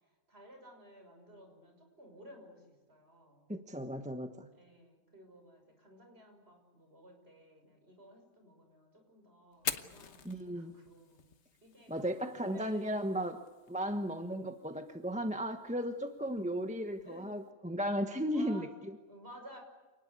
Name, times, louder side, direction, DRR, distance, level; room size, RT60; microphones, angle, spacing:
voice 1, 0.3-3.5 4.5-11.3 11.6-13.3 13.7-14.4 17.0-17.3 18.3-18.7 19.1-19.6, equal, 45° right, 3 dB, 6.4 m, -55 dB
voice 2, 3.5-4.5 10.2-10.7 11.9-13.4 13.7-18.9, equal, 5° right, 6 dB, 1.1 m, -35 dB
Fire, 9.5-17.5, left 6 dB, 55° left, 1.3 m, -47 dB
28.5 x 19.5 x 8.4 m, 1.2 s
omnidirectional pair, 1.5 m